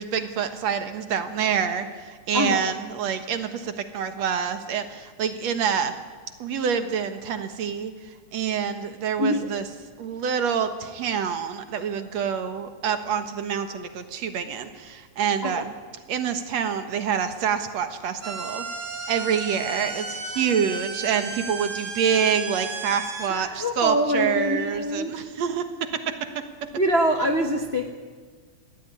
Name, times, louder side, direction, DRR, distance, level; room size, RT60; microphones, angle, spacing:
voice 1, 0.0-5.9 6.4-7.9 8.3-9.7 10.0-15.7 16.1-18.7 19.1-26.7, right 7 dB, 65° right, 9 dB, 2.5 m, -27 dB
voice 2, 2.3-2.7 9.2-9.5 15.4-15.6 23.3-25.1 26.8-27.9, equal, 40° left, 4 dB, 0.9 m, -24 dB
sound 1, 18.2-23.3, right 3 dB, 30° right, 1.7 m, -34 dB
22.0 x 16.0 x 9.7 m, 1.5 s
omnidirectional pair, 3.5 m